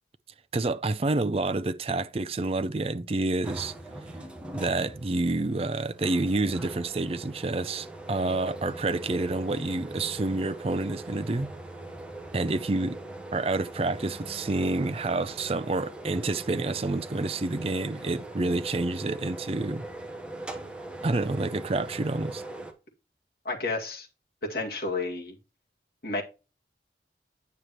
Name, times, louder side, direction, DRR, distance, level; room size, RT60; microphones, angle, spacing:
voice 1, 0.5-3.7 4.5-11.5 12.3-13.0 13.3-19.8 21.0-22.4, right 2 dB, 35° right, 0.5 m, -28 dB
sound 1, 3.4-22.7, right 2 dB, 5° right, 1.0 m, -41 dB
voice 2, 23.5-24.1 24.5-25.3 26.0-26.2, left 3 dB, 55° left, 2.1 m, -31 dB
9.3 x 6.6 x 2.9 m
head